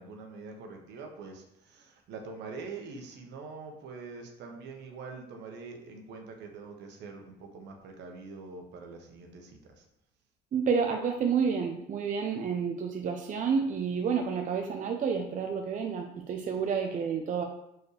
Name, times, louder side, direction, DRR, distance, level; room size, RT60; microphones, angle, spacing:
voice 1, 0.0-9.8, right 4 dB, 65° right, 3 dB, 1.3 m, -44 dB
voice 2, 10.5-17.4, right 6 dB, 45° right, 3 dB, 0.7 m, -29 dB
6.6 x 4.7 x 3.3 m, 0.83 s
supercardioid pair, 95°, 19 cm